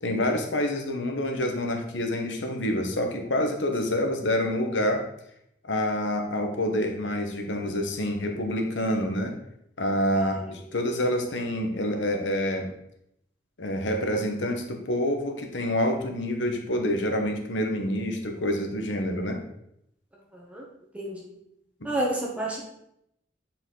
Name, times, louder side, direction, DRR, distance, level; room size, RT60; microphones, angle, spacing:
voice 1, 0.0-5.0 5.6-9.3 9.8-12.7 13.6-19.4, left 1 dB, 85° left, 4 dB, 1.2 m, -27 dB
voice 2, 20.3-20.6 20.9-21.3 21.8-22.6, right 1 dB, 5° right, -3 dB, 1.0 m, -30 dB
8.8 x 4.3 x 3.8 m, 0.76 s
head